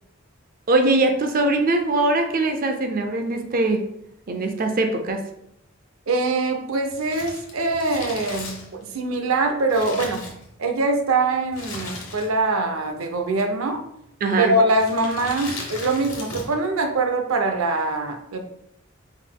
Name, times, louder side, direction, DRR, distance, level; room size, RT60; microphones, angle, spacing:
voice 1, 0.7-3.8 4.3-5.2 14.2-14.6, right 2 dB, 45° right, 5 dB, 0.5 m, -21 dB
voice 2, 6.1-10.3 10.6-13.8 14.3-18.4, right 2 dB, 90° right, 5 dB, 0.6 m, -23 dB
Crumpling crinkling, 6.9-10.9 11.5-12.5 12.8-12.9 13.7-14.1 14.7-16.6 16.9-17.0, left 3 dB, 85° left, 1.1 m, -37 dB
4.6 x 3.9 x 2.2 m, 0.77 s
head